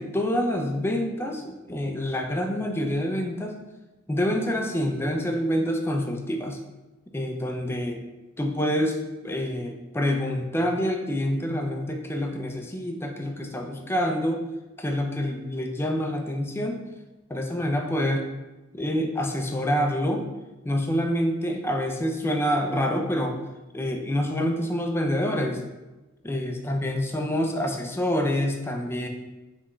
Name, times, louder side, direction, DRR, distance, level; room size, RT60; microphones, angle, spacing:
voice 1, 0.0-3.6 4.1-6.6 7.1-8.0 8.4-9.0 9.2-14.4 14.8-16.8 17.3-18.3 18.7-20.2 20.6-23.4 23.7-25.6 26.2-29.1, equal, 10° left, 3 dB, 0.4 m, -27 dB
4.5 x 3.4 x 3.1 m, 1.1 s
head